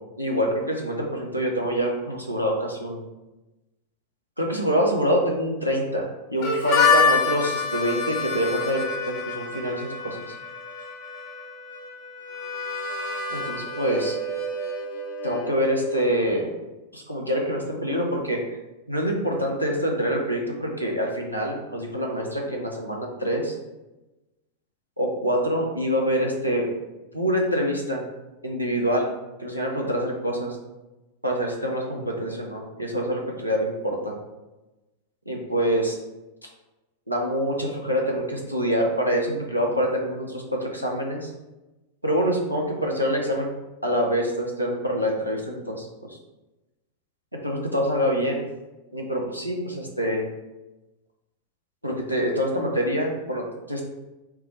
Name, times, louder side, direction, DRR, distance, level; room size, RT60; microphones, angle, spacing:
voice 1, 0.2-3.0 4.4-10.4 13.3-14.1 15.2-16.5 16.9-18.4 18.9-23.5 25.0-26.7 27.1-28.0 28.4-29.1 29.4-30.6 31.2-34.1 35.3-35.9 37.1-41.3 42.0-43.5 43.8-46.2 47.4-48.4 48.9-50.3 51.8-53.8, equal, 90° right, -1 dB, 0.7 m, -26 dB
Harmonica, 6.4-16.0, left 4 dB, 50° left, 0.7 m, -27 dB
4.6 x 2.0 x 4.4 m, 1.0 s
figure-of-eight pair, 90°, 0 cm